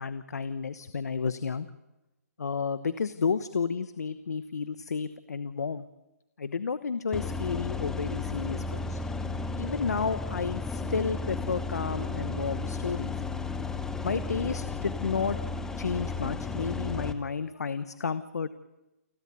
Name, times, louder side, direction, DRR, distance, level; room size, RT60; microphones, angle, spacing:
voice 1, 0.0-1.7 2.4-5.8 6.4-9.0 9.6-13.1 14.0-15.4 15.8-18.5, left 5 dB, 90° left, 14 dB, 1.0 m, -31 dB
sound 1, 7.1-17.1, left 3 dB, 5° left, 1.2 m, -34 dB
29.0 x 12.5 x 9.5 m, 1.0 s
hypercardioid pair, 145°, 8 cm